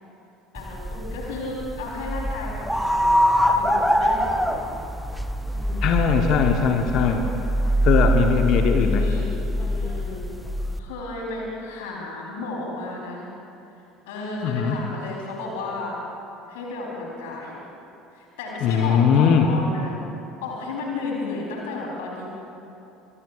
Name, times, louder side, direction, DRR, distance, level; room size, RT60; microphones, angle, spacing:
voice 1, 0.5-4.6 5.5-6.0 7.6-7.8 8.7-9.3 9.6-10.2 10.8-13.3 14.1-16.0 16.5-17.6 18.1-20.0 20.4-22.3, left 2 dB, 65° left, -3 dB, 3.8 m, -33 dB
sound 1, 0.6-10.8, equal, ahead, 0.9 m, -23 dB
voice 2, 5.8-7.3 7.8-9.0 14.4-14.8 18.6-19.5, left 7 dB, 50° left, 4 dB, 1.1 m, -20 dB
25.5 x 22.0 x 2.5 m, 2.7 s
figure-of-eight pair, 65°, 0 cm